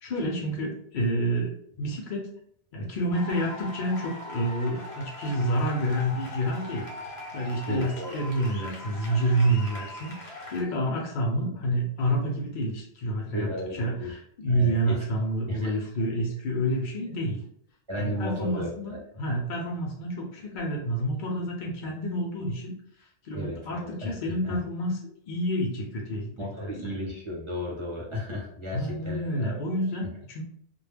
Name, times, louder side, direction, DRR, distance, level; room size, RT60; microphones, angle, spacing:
voice 1, 0.0-2.3 2.7-17.4 18.0-22.8 23.2-26.7 28.7-30.4, right 1 dB, 55° left, -1 dB, 0.7 m, -29 dB
sound 1, 3.1-10.6, left 1 dB, 80° left, 1.0 m, -41 dB
voice 2, 7.7-8.2 13.3-14.2 14.5-15.0 15.5-15.8 17.9-19.0 23.3-24.1 24.4-24.5 26.4-29.6, left 1 dB, 35° right, -4 dB, 0.6 m, -34 dB
2.2 x 2.0 x 3.3 m, 0.65 s
omnidirectional pair, 1.1 m